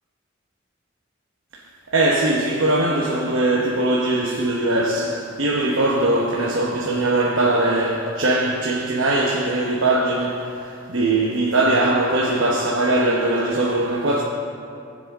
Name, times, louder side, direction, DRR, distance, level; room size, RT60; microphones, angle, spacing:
voice 1, 1.9-14.2, right 2 dB, 70° right, 0.9 m, -21 dB
19.5 x 7.5 x 3.6 m
head